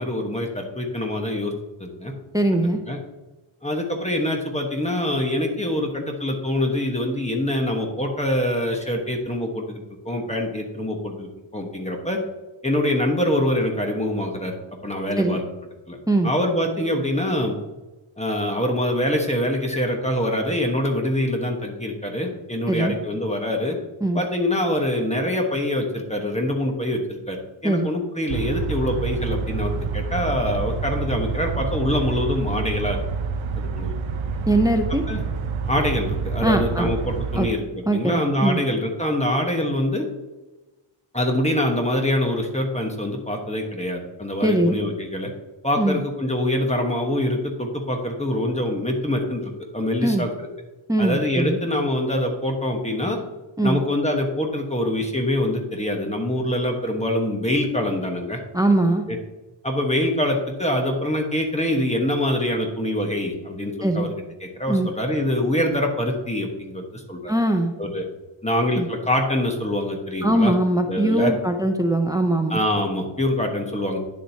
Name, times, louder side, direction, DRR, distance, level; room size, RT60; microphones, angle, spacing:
voice 1, 0.0-1.5 1.8-2.1 2.9-3.0 3.6-12.2 12.6-14.5 14.8-15.4 15.9-16.0 16.2-17.5 18.2-23.8 24.1-33.0 33.5-33.9 35.1-35.2 35.7-37.6 37.9-40.1 41.1-45.3 45.6-50.5 51.0-53.2 53.6-58.4 59.1-59.2 59.6-64.1 64.4-67.3 67.8-68.0 68.4-70.5 70.9-71.3 72.5-74.0, left 1 dB, 15° left, 2 dB, 1.1 m, -24 dB
voice 2, 2.3-2.8 15.2-15.4 16.1-16.3 22.7-22.9 24.0-24.2 27.6-27.9 34.5-35.0 36.4-36.9 37.4-37.5 37.9-38.6 44.4-44.8 45.8-46.0 50.0-50.2 50.9-51.6 53.6-53.8 58.5-59.1 63.8-64.1 64.7-64.9 67.3-67.7 68.8-68.9 70.2-72.6, right 1 dB, 10° right, 5 dB, 0.6 m, -21 dB
sound 1, 28.3-37.5, right 5 dB, 65° right, 0.6 m, -28 dB
9.8 x 7.4 x 2.8 m, 1.1 s
wide cardioid pair, 145°, 49 cm